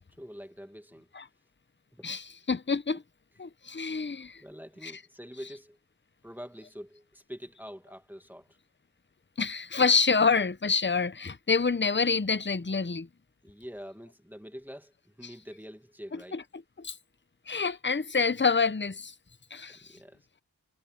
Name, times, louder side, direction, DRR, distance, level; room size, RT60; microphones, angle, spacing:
voice 1, 0.2-1.1 1.9-2.1 4.4-5.8 6.2-8.5 13.4-16.4 19.7-20.2, equal, 5° right, 2.1 m, -45 dB
voice 2, 2.0-3.0 3.4-4.4 4.8-4.9 9.4-13.1 16.1-16.4 16.8-17.0 17.5-19.1 19.5-19.9, left 5 dB, 30° left, 0.8 m, -27 dB
wide cardioid pair, 45°, 36 cm